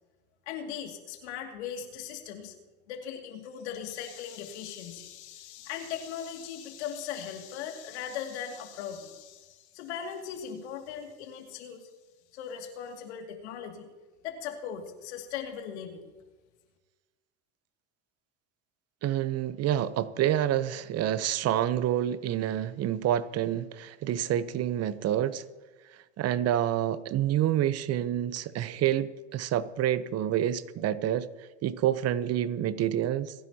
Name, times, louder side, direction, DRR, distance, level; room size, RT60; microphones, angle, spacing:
voice 1, 0.5-2.5 2.9-11.9 12.3-13.9 14.2-16.1, left 8 dB, 80° left, 3 dB, 2.5 m, -39 dB
voice 2, 19.0-25.4 26.2-31.3 31.6-33.3, right 11 dB, 50° right, 15 dB, 0.9 m, -28 dB
27.5 x 10.5 x 2.9 m, 1.3 s
hypercardioid pair, 80°, 33 cm